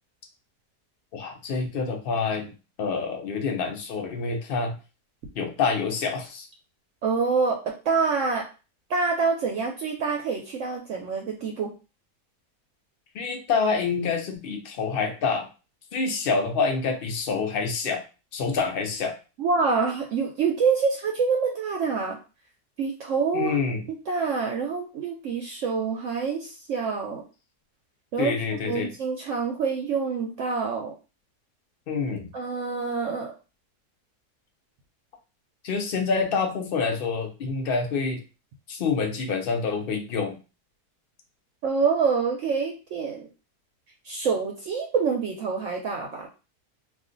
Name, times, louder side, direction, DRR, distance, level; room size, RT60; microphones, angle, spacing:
voice 1, 1.1-2.5 2.8-4.7 5.3-6.5 13.1-15.5 15.9-18.0 18.3-19.1 23.3-23.8 28.2-28.9 31.9-32.3 35.6-38.2 38.7-40.4, left 5 dB, 65° left, 3 dB, 0.5 m, -27 dB
voice 2, 7.0-7.6 7.9-8.5 8.9-11.7 19.4-22.2 22.8-23.6 24.1-27.2 28.1-28.3 28.6-30.9 32.3-33.3 41.6-43.3 44.0-46.3, right 5 dB, 65° right, 1 dB, 0.8 m, -26 dB
2.4 x 2.3 x 3.7 m, 0.32 s
omnidirectional pair, 1.6 m